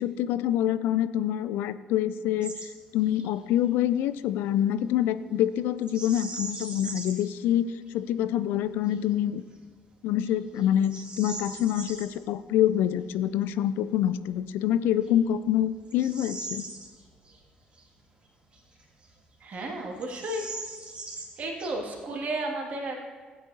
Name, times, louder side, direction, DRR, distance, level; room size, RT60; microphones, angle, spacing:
voice 1, 0.0-2.6 2.9-9.4 10.0-16.7, left 11 dB, 60° left, 14 dB, 0.3 m, -26 dB
Bird vocalization bird call bird song, 2.4-2.7 3.0-3.3 5.8-7.3 7.9-8.0 8.6-9.0 9.6-9.7 10.2-12.1 14.2-14.3 15.0-17.4 17.7-17.8 18.5-19.3 19.6-19.7 20.0-22.1, right 2 dB, 25° right, 2.6 m, -40 dB
voice 2, 19.4-20.4 21.4-23.0, right 2 dB, 45° right, 1 dB, 2.2 m, -33 dB
16.0 x 8.6 x 2.8 m, 1.5 s
figure-of-eight pair, 45°, 4 cm